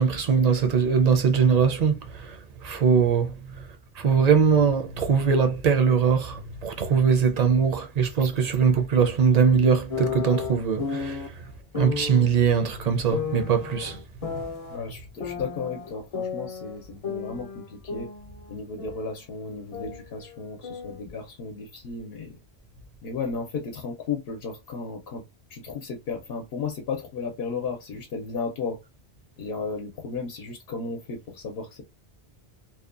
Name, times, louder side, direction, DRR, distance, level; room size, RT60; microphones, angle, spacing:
voice 1, 0.0-2.4 2.6-3.3 4.0-11.2 11.8-14.0, right 6 dB, 50° right, 0.5 m, -21 dB
sound 1, 9.9-11.3 11.7-12.3 13.1-14.8 15.2-16.8 17.0-19.2 19.5-21.0, left 6 dB, 45° left, 0.5 m, -33 dB
voice 2, 14.7-18.1 18.5-22.4 23.0-25.2 25.5-28.8 29.4-31.8, left 4 dB, 70° left, 0.8 m, -34 dB
2.7 x 2.2 x 2.4 m
omnidirectional pair, 1.1 m